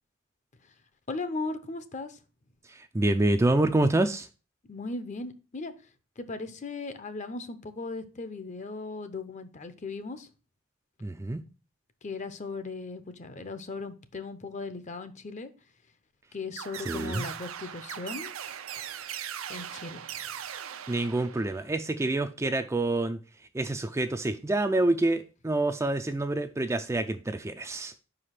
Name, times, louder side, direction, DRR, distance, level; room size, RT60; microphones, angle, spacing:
voice 1, 1.1-2.2 4.7-5.7 6.2-10.3 12.0-15.5 16.3-18.3 19.5-20.2, left 3 dB, 35° left, 0.7 m, -37 dB
voice 2, 2.7-4.3 11.0-11.4 16.8-17.3 20.9-23.2 23.5-27.9, right 2 dB, 15° right, 0.4 m, -27 dB
sound 1, 16.6-21.7, right 9 dB, 85° right, 0.6 m, -39 dB
5.1 x 5.0 x 5.7 m
head